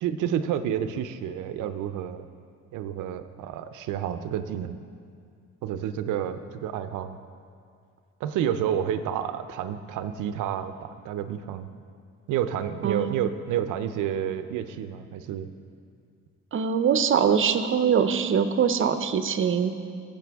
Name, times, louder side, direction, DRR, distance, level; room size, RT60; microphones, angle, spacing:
voice 1, 0.0-2.3 2.7-4.8 5.6-7.2 8.2-11.7 12.3-15.5, right 9 dB, 90° right, 11 dB, 0.6 m, -30 dB
voice 2, 12.8-13.2 16.5-19.7, right 7 dB, 45° right, 10 dB, 0.6 m, -23 dB
14.5 x 8.3 x 3.5 m, 2.2 s
cardioid pair, 90°, 30 cm